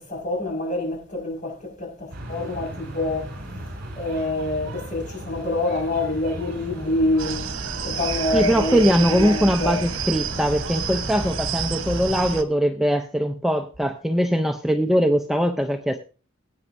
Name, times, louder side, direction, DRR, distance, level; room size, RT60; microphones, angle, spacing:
voice 1, 0.0-3.3 4.0-7.5 7.8-9.8, left 2 dB, 40° left, 5.5 m, -26 dB
sound 1, 2.1-12.3, right 1 dB, 50° right, 6.5 m, -36 dB
sound 2, 7.2-12.4, right 7 dB, 90° right, 1.1 m, -30 dB
voice 2, 8.3-16.0, equal, ahead, 0.6 m, -21 dB
21.0 x 8.9 x 2.6 m
head